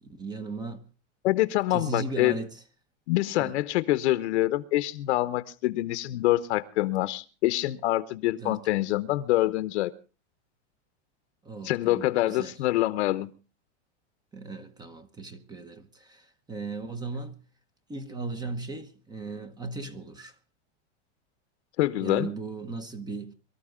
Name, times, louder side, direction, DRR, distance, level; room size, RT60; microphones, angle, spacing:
voice 1, 0.0-0.9 1.7-2.6 3.4-3.5 8.4-9.0 11.4-12.5 14.3-17.4 17.9-20.3 22.0-23.3, right 3 dB, 10° right, 1.0 m, -37 dB
voice 2, 1.2-2.3 3.1-9.9 11.6-13.3 21.8-22.3, left 16 dB, 70° left, 1.0 m, -25 dB
24.0 x 13.5 x 3.7 m
supercardioid pair, 155°, 36 cm